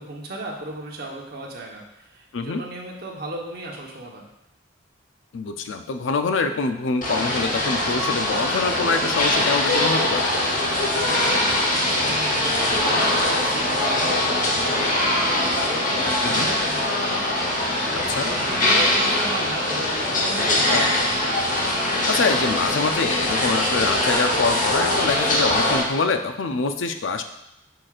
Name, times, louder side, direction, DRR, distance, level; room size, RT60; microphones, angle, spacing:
voice 1, 0.0-4.3 11.2-21.1, right 2 dB, 55° right, -2 dB, 1.2 m, -36 dB
voice 2, 5.3-10.4 16.2-16.5 17.9-18.2 20.7-20.9 22.1-27.2, left 4 dB, 80° left, 7 dB, 0.5 m, -25 dB
sound 1, 7.0-25.8, left 1 dB, 45° left, 1.1 m, -22 dB
6.5 x 5.9 x 2.5 m, 0.85 s
head